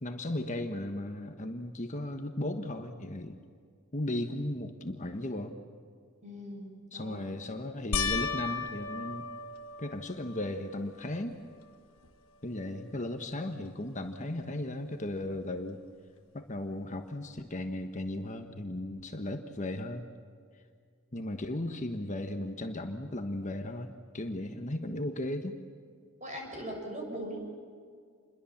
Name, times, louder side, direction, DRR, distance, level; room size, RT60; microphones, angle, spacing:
voice 1, 0.0-3.4 3.9-5.6 6.9-9.3 9.8-11.3 12.4-15.8 16.3-20.1 21.1-25.6, left 1 dB, 35° left, 6 dB, 1.3 m, -36 dB
voice 2, 6.2-7.2 26.2-27.4, equal, 35° right, 1 dB, 7.0 m, -40 dB
sound 1, 7.9-10.5 11.1-11.7 12.0-12.1 15.4-15.5, left 5 dB, 70° left, 1.4 m, -35 dB
28.5 x 22.5 x 7.3 m, 2.1 s
head